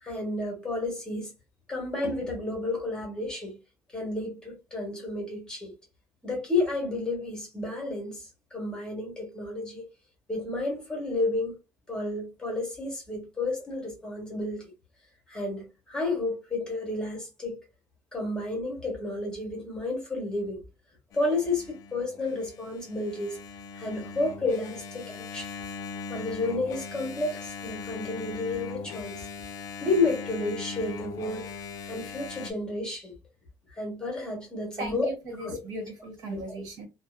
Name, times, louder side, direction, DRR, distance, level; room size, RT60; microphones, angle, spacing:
voice 1, 0.0-1.3 1.7-3.6 3.9-5.7 6.2-9.8 10.3-11.6 11.9-14.6 15.3-17.6 18.1-20.6 21.1-23.4 23.7-25.5 26.1-29.3 29.8-31.5 31.8-33.2 33.7-35.1 35.4-35.6 36.3-36.4, left 2 dB, 10° left, 1.1 m, -31 dB
Engine, 21.1-32.5, left 5 dB, 55° left, 0.4 m, -40 dB
voice 2, 34.8-36.9, right 1 dB, 65° right, 1.1 m, -37 dB
2.7 x 2.1 x 2.3 m
cardioid pair, 145°, 7 cm